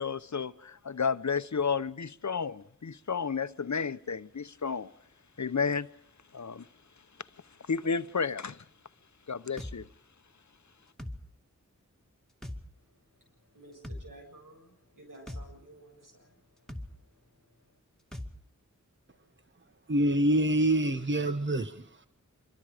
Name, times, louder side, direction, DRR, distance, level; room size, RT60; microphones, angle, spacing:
voice 1, 0.0-4.9 5.4-5.9 6.3-6.7 7.7-8.6 9.3-9.9, left 5 dB, 60° left, 0.9 m, -32 dB
sound 1, 9.6-9.8 11.0-11.2 12.4-12.6 13.8-14.0 15.3-15.5 16.7-16.9 18.1-18.3, left 1 dB, ahead, 2.4 m, -39 dB
voice 2, 12.9-17.8, right 1 dB, 80° right, 7.8 m, -55 dB
voice 3, 19.9-22.1, right 1 dB, 35° right, 1.2 m, -26 dB
26.0 x 23.5 x 5.1 m
wide cardioid pair, 45°, 31 cm